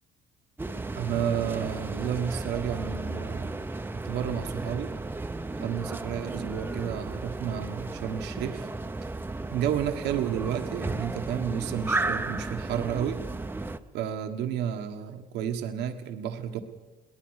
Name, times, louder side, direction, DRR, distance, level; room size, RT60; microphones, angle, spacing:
sound 1, 0.6-13.8, right 2 dB, 10° right, 0.8 m, -34 dB
voice 1, 0.9-3.7 4.0-4.9 5.6-8.7 9.0-9.1 9.5-13.2 13.9-16.6, right 9 dB, 85° right, 6 dB, 1.5 m, -31 dB
22.5 x 18.5 x 6.4 m, 1.2 s
cardioid pair, 110°, 17 cm